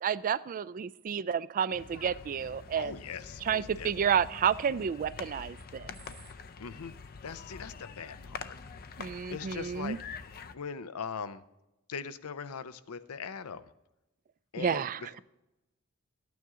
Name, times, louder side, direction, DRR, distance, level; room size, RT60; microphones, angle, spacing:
voice 1, 0.0-3.0 3.4-5.9 9.0-10.0 14.6-15.0, right 7 dB, 40° right, 17 dB, 0.3 m, -30 dB
sound 1, 1.7-10.5, left 5 dB, 45° left, 0.5 m, -46 dB
voice 2, 2.8-3.9 6.6-6.9 7.2-8.6 9.3-10.0 10.5-11.4 11.9-13.6 14.5-14.9, left 6 dB, 90° left, 12 dB, 0.6 m, -40 dB
12.5 x 9.3 x 3.7 m, 0.94 s
head